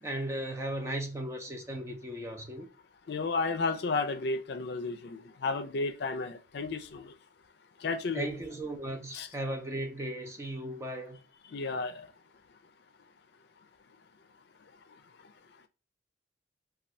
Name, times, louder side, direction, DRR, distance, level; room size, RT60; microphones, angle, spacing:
voice 1, 0.0-2.7 8.1-11.2, right 1 dB, 15° right, 0.5 m, -36 dB
voice 2, 3.1-7.1 7.8-8.3 9.1-9.3 11.5-12.1, left 3 dB, 65° left, 0.4 m, -32 dB
2.6 x 2.3 x 3.3 m
head